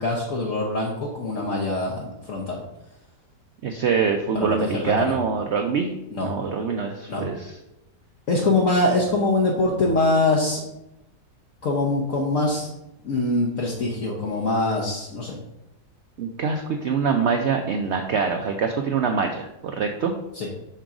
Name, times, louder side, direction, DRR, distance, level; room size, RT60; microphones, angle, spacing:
voice 1, 0.0-2.6 4.3-5.1 6.1-6.3 7.1-7.3 8.3-10.6 11.6-12.7 13.0-15.4 20.3-20.5, left 2 dB, 55° left, -2 dB, 1.2 m, -23 dB
voice 2, 3.6-5.9 6.2-7.6 16.2-20.1, right 5 dB, 70° right, 4 dB, 0.6 m, -24 dB
5.5 x 3.8 x 5.9 m, 0.89 s
omnidirectional pair, 1.8 m